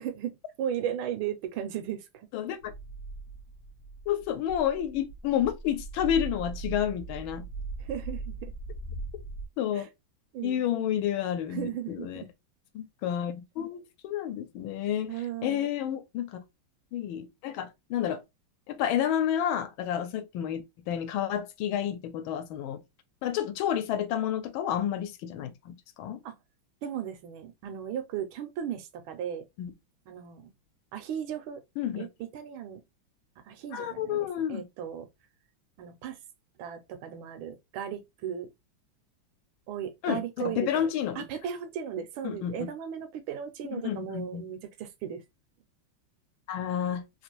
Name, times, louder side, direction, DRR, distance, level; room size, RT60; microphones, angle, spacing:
voice 1, 0.0-2.3 7.8-8.5 9.8-9.9 10.3-10.9 11.5-12.3 15.1-15.7 26.2-26.4 26.8-29.4 30.1-30.5 30.9-31.6 32.0-32.8 33.5-35.1 35.8-36.2 36.6-38.5 39.7-40.9 41.2-45.2, right 9 dB, 85° right, 1.4 m, -36 dB
voice 2, 2.3-2.7 4.1-7.4 9.6-9.8 10.4-12.2 12.7-15.1 15.4-16.4 16.9-18.2 18.7-22.8 23.2-26.2 29.6-29.7 31.8-32.1 33.7-34.7 40.0-41.2 42.2-42.7 43.7-44.4 46.5-47.0, left 10 dB, 85° left, 1.4 m, -30 dB
sound 1, 2.6-9.5, right 3 dB, 60° left, 0.6 m, -39 dB
3.5 x 2.5 x 2.9 m
omnidirectional pair, 2.2 m